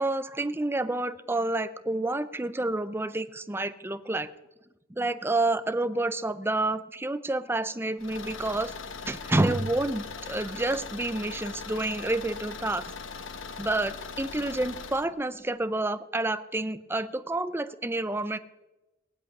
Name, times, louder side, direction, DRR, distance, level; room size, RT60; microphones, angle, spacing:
voice 1, 0.0-4.3 4.9-8.7 9.1-12.8 13.6-18.4, right 2 dB, 10° right, 13 dB, 0.6 m, -29 dB
Car / Engine, 8.0-15.1, left 5 dB, 65° left, 1.0 m, -40 dB
18.5 x 8.2 x 9.6 m, 1.1 s
head